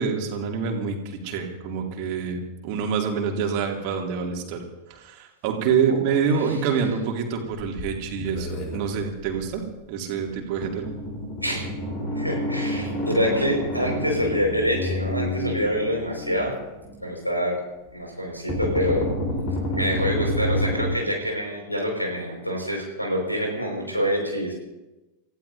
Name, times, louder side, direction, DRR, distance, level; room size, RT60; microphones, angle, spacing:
voice 1, 0.0-4.6 4.9-10.9, right 6 dB, 45° right, 2 dB, 2.3 m, -26 dB
sound 1, 7.5-9.5 10.3-10.4 10.6-17.0 18.5-21.0, left 1 dB, 40° left, 3.7 m, -29 dB
voice 2, 12.2-16.5 17.0-17.5 17.9-19.1 19.7-24.5, equal, 90° left, 0 dB, 4.9 m, -26 dB
29.0 x 15.5 x 2.7 m, 1.1 s
figure-of-eight pair, 90°, 0 cm